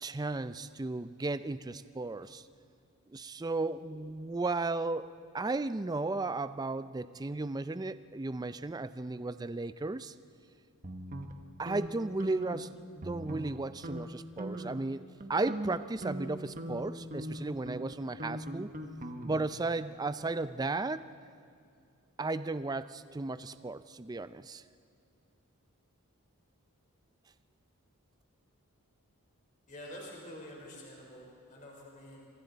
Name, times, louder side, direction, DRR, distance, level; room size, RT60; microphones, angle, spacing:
voice 1, 0.0-2.4 3.1-5.1 5.3-10.1 11.6-15.0 15.3-18.7 19.2-21.1 22.2-24.6, right 3 dB, 15° right, 13 dB, 0.4 m, -35 dB
sound 1, 10.8-11.9 12.2-12.6 13.0-13.6 13.8-14.0 14.4-14.8 15.2-19.6, right 1 dB, 35° right, 1.2 m, -40 dB
voice 2, 29.7-32.2, equal, 35° left, -2 dB, 4.0 m, -47 dB
26.5 x 25.0 x 4.1 m, 2.5 s
head